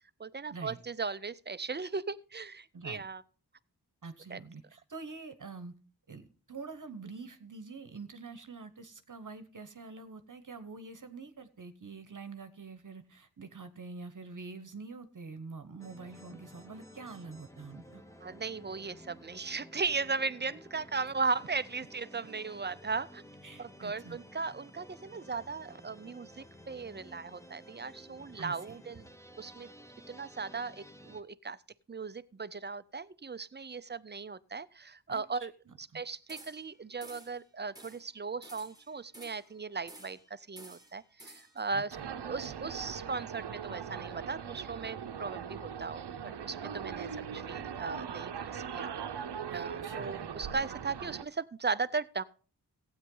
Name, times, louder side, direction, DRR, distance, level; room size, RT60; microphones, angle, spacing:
voice 1, 0.2-3.2 4.3-4.4 18.2-23.2 23.6-29.0 29.4-29.7 30.1-31.6 31.9-35.5 35.8-42.0 42.3-48.9 49.5-52.2, right 4 dB, 25° right, 16 dB, 0.5 m, -37 dB
voice 2, 4.0-5.7 6.1-18.0 23.4-24.2 28.4-28.9 35.1-36.0 41.7-42.1 42.5-42.6 49.5-50.3, right 4 dB, 50° right, 10 dB, 1.0 m, -46 dB
sound 1, 15.8-31.2, equal, 10° left, 1.0 m, -54 dB
sound 2, 36.3-36.7 37.0-37.4 37.8-38.1 38.4-39.5 39.9-40.3 40.6-41.6, right 1 dB, 10° right, 1.6 m, -52 dB
sound 3, 41.9-51.2, right 7 dB, 80° right, 0.7 m, -40 dB
15.5 x 8.9 x 3.8 m, 0.40 s
wide cardioid pair, 80°, 40 cm